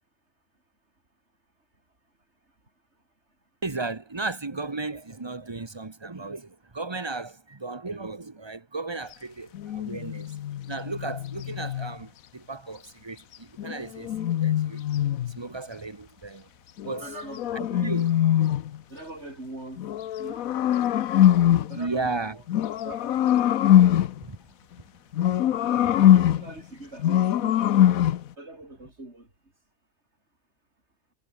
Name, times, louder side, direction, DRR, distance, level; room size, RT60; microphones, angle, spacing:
voice 1, 3.6-10.3 10.7-16.5 16.8-17.1 17.5-18.1 21.2-21.3 21.7-22.4 24.2-24.4 25.8-26.1, right 3 dB, 20° right, 1.0 m, -35 dB
sound 1, 9.5-11.9 13.6-15.4 16.8-18.8 19.8-21.8 22.5-24.2 25.1-26.5 27.0-28.3, left 11 dB, 75° left, 1.2 m, -22 dB
voice 2, 17.0-17.9 18.9-19.8 20.2-20.9 21.7-22.4 22.8-24.2 25.7-27.9 28.4-29.3, right 2 dB, 50° right, 6.7 m, -43 dB
omnidirectional pair, 1.5 m